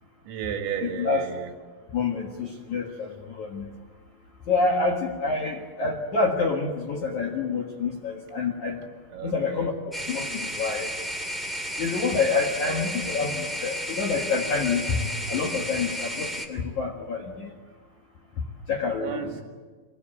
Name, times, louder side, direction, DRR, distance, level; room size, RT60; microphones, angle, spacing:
voice 1, 0.3-1.5 9.1-9.7 12.7-13.4 19.0-19.4, right 8 dB, 80° right, 4 dB, 4.6 m, -34 dB
voice 2, 0.8-1.2 1.9-3.7 4.5-8.8 9.2-9.7 10.1-10.9 11.8-15.0 15.3-17.5 18.7-19.3, left 4 dB, 65° left, 0 dB, 1.9 m, -27 dB
sound 1, 9.9-16.4, equal, ahead, 0.4 m, -33 dB
24.0 x 19.5 x 8.7 m, 1.5 s
omnidirectional pair, 6.0 m